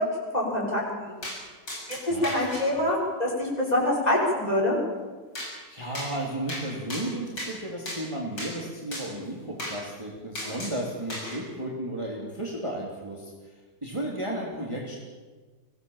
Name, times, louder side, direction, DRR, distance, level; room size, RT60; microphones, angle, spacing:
voice 1, 0.3-1.1 2.1-4.8, left 1 dB, 20° left, -3 dB, 6.6 m, -25 dB
sound 1, 1.2-1.4 1.7-2.6 5.4-5.5 5.9-6.1 6.5-6.6 6.9-7.5 7.9-8.0 8.4-8.5 8.9-9.1 9.6-9.8 10.4-10.8 11.1-11.4, left 1 dB, 75° left, 7.6 m, -35 dB
voice 2, 2.1-2.4 2.8-2.9 5.7-15.0, right 1 dB, 15° right, -3 dB, 3.1 m, -34 dB
24.0 x 17.5 x 7.4 m, 1.4 s
omnidirectional pair, 1.9 m